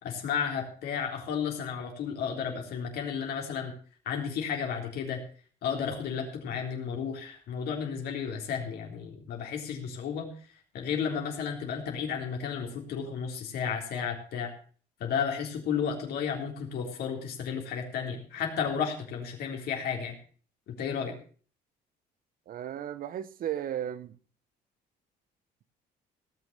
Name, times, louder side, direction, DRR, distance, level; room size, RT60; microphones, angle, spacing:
voice 1, 0.0-3.7 4.1-5.2 5.6-10.3 10.7-14.5 15.0-20.2 20.7-21.1, left 7 dB, 70° left, 3.7 m, -33 dB
voice 2, 22.5-24.2, right 10 dB, 55° right, 1.1 m, -35 dB
18.0 x 6.5 x 6.7 m
cardioid pair, 110°, 17 cm